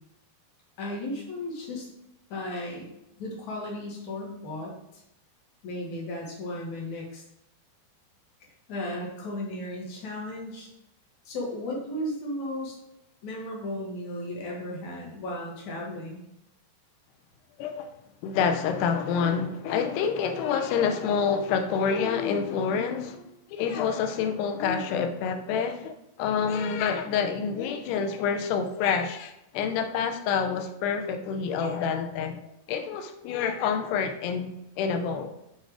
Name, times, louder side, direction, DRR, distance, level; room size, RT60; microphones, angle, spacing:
voice 1, 0.8-1.9 2.3-2.9 3.2-5.0 5.6-7.2 8.7-10.7 11.2-12.8 13.2-16.2, left 1 dB, 55° left, 2.4 m, -35 dB
voice 2, 17.6-17.9 18.2-35.3, left 6 dB, 80° left, 2.7 m, -28 dB
7.8 x 4.3 x 4.8 m
omnidirectional pair, 4.9 m